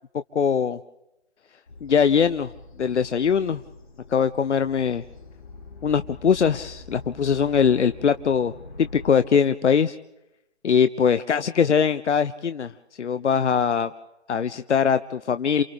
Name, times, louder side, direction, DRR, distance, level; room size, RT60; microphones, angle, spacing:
voice 1, 0.3-0.8 1.8-2.5 2.8-3.6 4.1-5.0 5.8-8.5 8.8-10.0 10.6-12.7 13.0-13.9 14.3-15.6, left 7 dB, 80° left, 11 dB, 0.7 m, -21 dB
sound 1, 1.7-9.1, left 2 dB, 45° left, 3.3 m, -44 dB
28.5 x 28.5 x 3.4 m, 0.90 s
hypercardioid pair, 170°, 34 cm